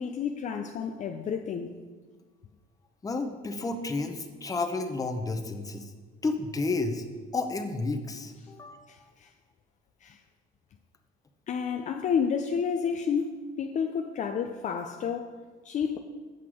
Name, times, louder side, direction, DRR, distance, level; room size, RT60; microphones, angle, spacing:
voice 1, 0.0-1.8 8.9-9.3 10.0-10.2 11.5-15.3 15.6-16.0, left 6 dB, 45° left, 5 dB, 0.5 m, -30 dB
voice 2, 3.0-5.9 6.2-7.0 7.3-8.9, left 3 dB, 20° left, 6 dB, 0.8 m, -31 dB
7.8 x 5.8 x 4.9 m, 1.4 s
cardioid pair, 110°, 17 cm